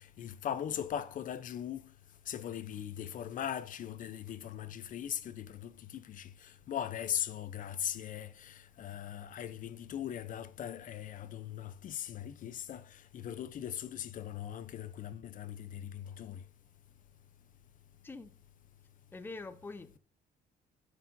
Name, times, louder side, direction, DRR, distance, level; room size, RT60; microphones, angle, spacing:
voice 1, 0.0-1.9 2.3-16.4, left 10 dB, 50° left, 0.7 m, -40 dB
voice 2, 19.1-20.0, left 3 dB, 10° left, 0.7 m, -44 dB
9.3 x 6.8 x 2.7 m
cardioid pair, 110°, 17 cm